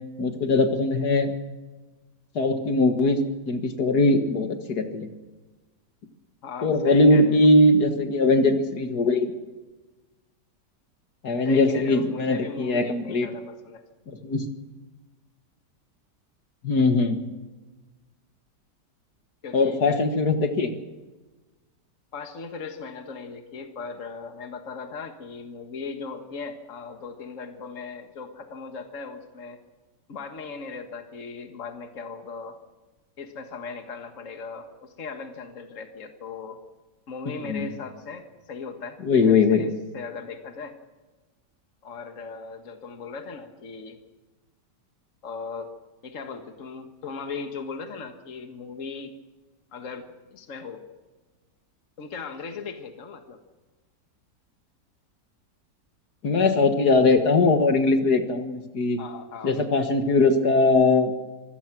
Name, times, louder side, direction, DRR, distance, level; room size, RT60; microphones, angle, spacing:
voice 1, 0.2-1.3 2.4-5.1 6.6-9.3 11.2-13.3 14.1-14.5 16.6-17.2 19.5-20.7 37.5-37.7 39.0-39.6 56.2-59.0 59.4-61.2, left 2 dB, 65° left, 7 dB, 2.2 m, -21 dB
voice 2, 6.4-7.5 11.5-13.8 19.4-20.0 22.1-29.6 30.1-32.6 33.2-36.6 37.1-39.7 39.9-40.8 41.8-44.0 45.2-45.7 46.0-49.1 49.7-50.8 52.0-53.4 59.0-59.6, left 5 dB, 50° left, 6 dB, 1.9 m, -38 dB
25.5 x 17.0 x 6.1 m, 1.2 s
omnidirectional pair, 1.9 m